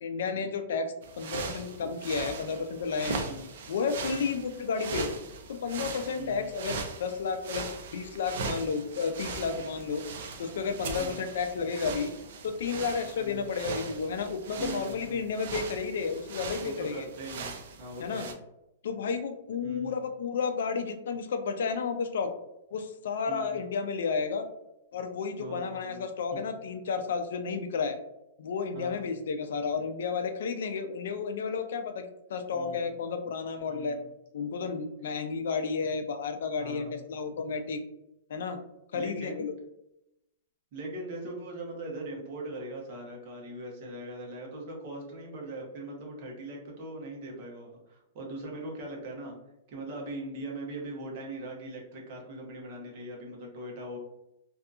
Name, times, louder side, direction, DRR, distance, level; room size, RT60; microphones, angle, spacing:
voice 1, 0.0-3.2 3.7-5.1 5.5-7.7 7.9-10.0 10.4-12.1 12.4-17.1 18.0-18.3 18.8-22.3 22.7-24.5 24.9-28.0 28.4-34.0 34.3-37.8 38.3-38.6 38.9-39.5, left 5 dB, 70° left, 8 dB, 0.3 m, -32 dB
sound 1, 1.0-18.3, right 4 dB, 55° right, 0.4 m, -39 dB
voice 2, 6.2-6.5 11.0-11.2 13.2-13.5 14.6-15.3 16.6-17.5 17.8-18.3 19.6-20.0 23.3-23.6 25.4-26.0 26.3-26.5 28.7-29.1 32.5-32.9 33.7-34.1 36.6-37.0 38.9-39.5 40.7-49.3 49.7-54.0, right 1 dB, 40° right, -1 dB, 0.8 m, -40 dB
2.7 x 2.4 x 2.4 m, 0.86 s
supercardioid pair, 170°, 0 cm